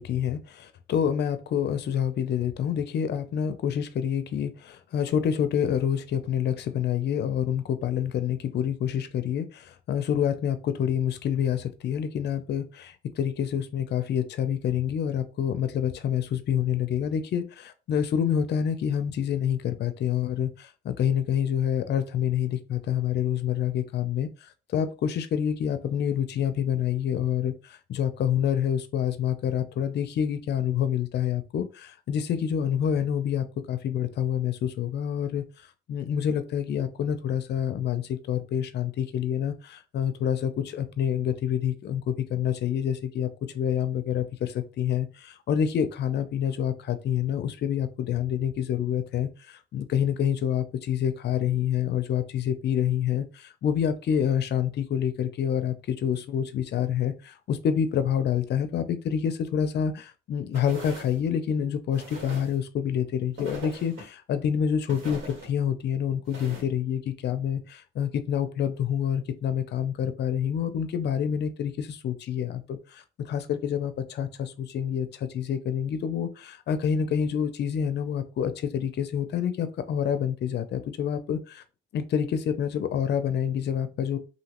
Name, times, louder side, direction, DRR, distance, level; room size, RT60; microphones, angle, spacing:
voice 1, 0.0-43.3 43.5-81.6 81.9-84.2, left 8 dB, 60° left, 10 dB, 0.5 m, -27 dB
sound 1, 60.5-61.2 61.9-62.6 63.4-64.1 64.9-65.5 66.3-66.6, right 1 dB, 80° right, 1.6 m, -40 dB
2.9 x 2.7 x 2.9 m, 0.33 s
cardioid pair, 90°, 20 cm